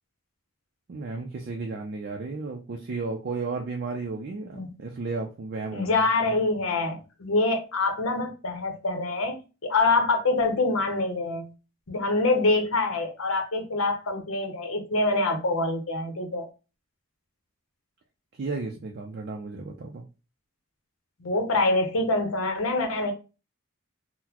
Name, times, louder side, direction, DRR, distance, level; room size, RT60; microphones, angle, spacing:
voice 1, 0.9-6.4 18.3-20.0, right 3 dB, 50° right, 0.4 m, -34 dB
voice 2, 5.7-11.5 11.9-16.5 21.2-23.1, left 2 dB, 75° left, 0.8 m, -25 dB
3.9 x 2.1 x 2.8 m
head